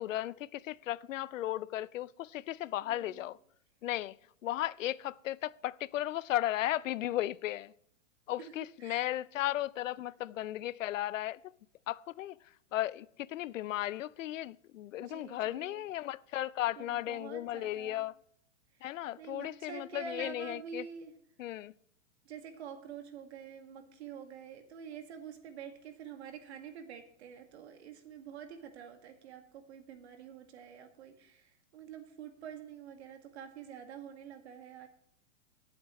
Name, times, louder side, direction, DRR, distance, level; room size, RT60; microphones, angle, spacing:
voice 1, 0.0-3.4 3.8-4.2 4.4-7.7 8.3-11.4 11.9-12.4 12.7-18.1 18.8-20.8 21.4-21.7, left 14 dB, 80° left, 0.6 m, -35 dB
voice 2, 2.9-3.3 8.4-8.5 8.8-9.1 15.0-15.8 16.8-18.1 18.8-21.1 22.3-34.9, right 7 dB, 60° right, 2.0 m, -47 dB
18.5 x 7.9 x 3.1 m
hypercardioid pair, 165°, 38 cm